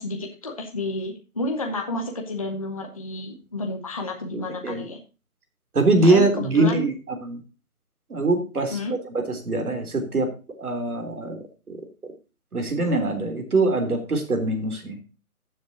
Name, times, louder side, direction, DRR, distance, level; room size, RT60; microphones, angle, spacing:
voice 1, 0.0-5.0 6.0-6.8 8.7-8.9, left 2 dB, 25° left, 2 dB, 0.9 m, -30 dB
voice 2, 4.3-4.8 5.7-6.9 7.2-7.4 8.1-8.8 9.1-10.3 10.6-11.4 11.7-11.8 12.0-12.1 12.5-15.0, right 2 dB, 80° right, 4 dB, 3.4 m, -23 dB
14.5 x 7.5 x 2.8 m, 0.32 s
hypercardioid pair, 170°, 44 cm